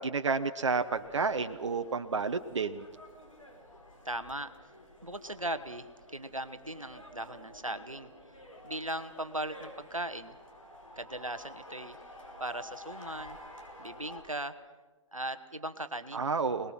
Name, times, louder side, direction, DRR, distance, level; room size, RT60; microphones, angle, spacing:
voice 1, 0.0-2.8 16.1-16.7, right 4 dB, 65° right, 9 dB, 1.0 m, -30 dB
sound 1, 0.8-14.2, left 1 dB, 85° left, 5.2 m, -51 dB
voice 2, 4.0-4.5 5.0-8.1 8.6-10.4 11.0-12.0 12.4-13.4 13.8-14.6 15.1-16.3, right 1 dB, 90° right, 10 dB, 1.2 m, -38 dB
26.5 x 20.0 x 6.0 m, 1.3 s
figure-of-eight pair, 125°, 17 cm